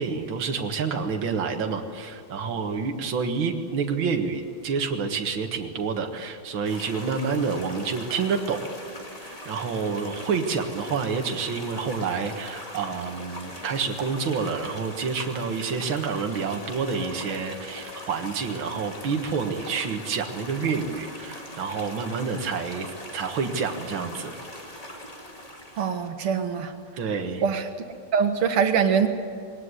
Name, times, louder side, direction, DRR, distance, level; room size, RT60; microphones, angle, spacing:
voice 1, 0.0-8.6 9.2-24.4 27.0-27.4, right 5 dB, 65° right, 4 dB, 2.3 m, -28 dB
sound 1, 6.6-26.1, left 1 dB, 15° left, 2.2 m, -41 dB
Piano, 16.9-19.9 20.5-20.6 21.3-21.5, left 5 dB, 70° left, 9.1 m, -46 dB
voice 2, 25.8-26.7 27.4-27.7 28.1-29.1, right 7 dB, 85° right, 7 dB, 2.4 m, -23 dB
21.0 x 18.5 x 9.8 m, 2.2 s
omnidirectional pair, 2.4 m